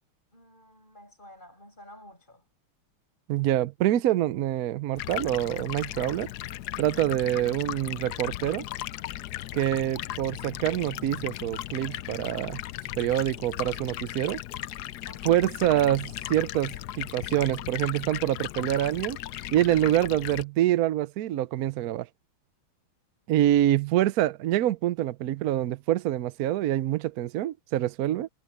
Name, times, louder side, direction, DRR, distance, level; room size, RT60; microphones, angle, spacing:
voice 1, 0.3-2.4 15.1-15.5, left 1 dB, 20° left, 7.2 m, -51 dB
voice 2, 3.3-6.3 6.8-8.6 9.5-12.6 13.0-14.4 15.2-19.2 19.5-22.1 23.3-28.3, right 13 dB, 75° right, 0.8 m, -26 dB
Stream, 5.0-20.4, left 14 dB, 80° left, 0.9 m, -37 dB
omnidirectional pair, 2.3 m